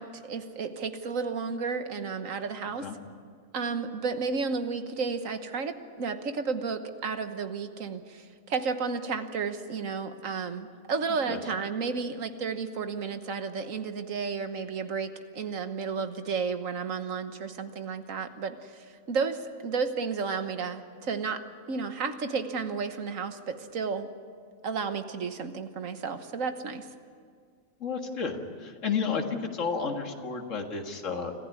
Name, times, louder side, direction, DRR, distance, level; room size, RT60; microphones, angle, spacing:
voice 1, 0.0-2.9 3.5-24.1 24.6-26.9, right 5 dB, 70° right, 9 dB, 1.6 m, -32 dB
voice 2, 27.8-31.3, left 5 dB, 65° left, 3 dB, 2.2 m, -31 dB
26.0 x 14.5 x 9.7 m, 2.1 s
omnidirectional pair, 1.4 m